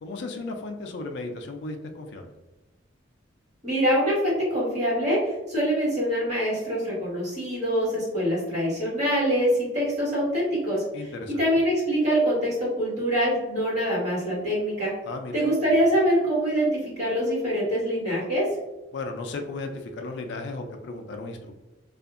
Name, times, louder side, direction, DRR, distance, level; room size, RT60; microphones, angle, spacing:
voice 1, 0.0-2.3 10.9-11.4 15.1-15.4 18.9-21.5, left 3 dB, 60° left, 4 dB, 0.3 m, -35 dB
voice 2, 3.6-10.8 11.4-14.9 15.3-18.5, equal, 35° right, -9 dB, 1.5 m, -24 dB
2.7 x 2.4 x 2.4 m, 1.0 s
head